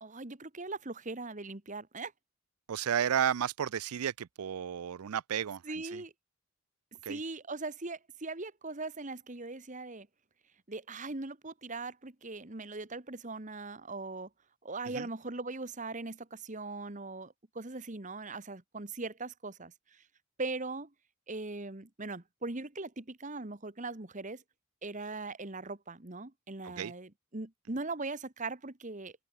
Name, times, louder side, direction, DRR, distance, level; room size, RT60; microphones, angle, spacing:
voice 1, 0.0-2.1 5.6-6.1 7.1-10.1 10.7-14.3 14.6-20.0 20.4-20.9 21.3-24.4 24.8-29.1, right 3 dB, 35° right, 1.4 m, -40 dB
voice 2, 2.7-5.6 5.9-6.0 7.0-7.2 14.9-15.1 26.6-26.9, right 8 dB, 90° right, 0.4 m, -32 dB
open air
head